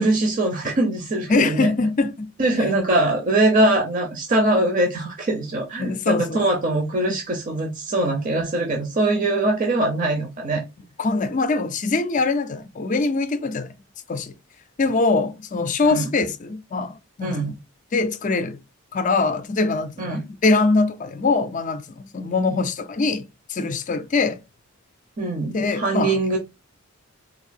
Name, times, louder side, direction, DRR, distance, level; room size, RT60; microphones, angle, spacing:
voice 1, 0.0-1.7 2.4-10.6 15.8-16.1 17.2-17.5 20.0-20.2 25.2-26.4, right 2 dB, 35° right, 0.7 m, -22 dB
voice 2, 1.3-2.3 5.8-6.4 11.0-13.7 14.1-14.3 14.8-17.6 17.9-18.6 18.9-21.9 22.1-24.4 25.5-26.2, left 3 dB, 35° left, 0.4 m, -23 dB
4.0 x 2.6 x 2.6 m
head